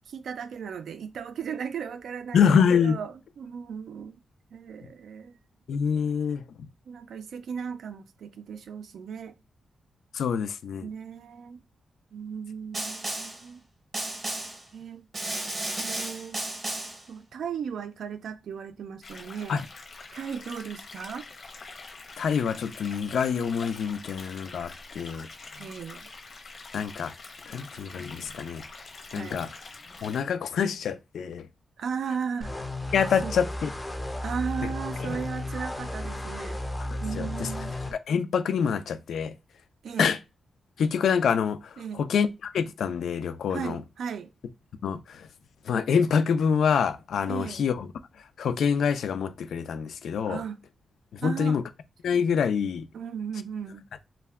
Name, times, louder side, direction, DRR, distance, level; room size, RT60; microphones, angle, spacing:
voice 1, 0.1-4.2 4.5-5.4 6.9-9.3 10.8-11.6 12.1-13.6 14.7-15.1 15.8-16.4 17.1-19.6 20.1-21.3 25.6-26.1 29.1-29.4 31.8-32.6 33.2-33.4 34.2-36.6 37.0-37.8 39.8-40.1 41.8-42.1 43.5-44.3 47.3-47.7 50.2-50.6 51.2-51.6 52.9-53.9, right 7 dB, 80° right, 0.3 m, -36 dB
voice 2, 2.3-3.0 5.7-6.4 10.1-10.9 19.5-19.6 22.2-25.3 26.7-27.1 27.5-28.6 29.1-29.5 30.0-31.5 32.9-33.7 35.0-35.2 37.1-37.5 37.9-39.3 40.0-40.2 40.8-43.8 44.8-45.3 45.7-47.9 48.4-50.4 51.2-51.6 52.0-52.9, left 7 dB, 80° left, 0.3 m, -26 dB
Snare drum, 12.7-13.4 13.9-14.6 15.1-17.0, right 2 dB, 30° right, 0.7 m, -33 dB
sound 1, 19.0-30.2, left 3 dB, 60° left, 0.7 m, -45 dB
sound 2, 32.4-37.9, left 1 dB, 15° left, 0.4 m, -34 dB
2.2 x 2.1 x 3.4 m
wide cardioid pair, 125°, 0 cm